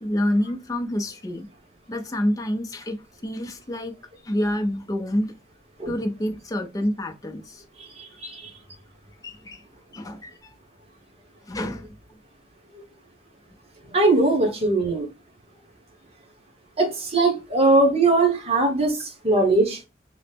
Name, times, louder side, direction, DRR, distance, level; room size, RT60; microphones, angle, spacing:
voice 1, 0.0-1.5 1.9-3.9 4.2-5.3 5.9-7.6 8.2-8.4 9.2-9.6 9.9-10.5 11.5-11.9, left 1 dB, 20° left, 0.5 m, -28 dB
voice 2, 8.0-8.5 13.9-15.1 16.8-19.8, right 2 dB, 35° right, 1.0 m, -20 dB
2.9 x 2.0 x 3.3 m
head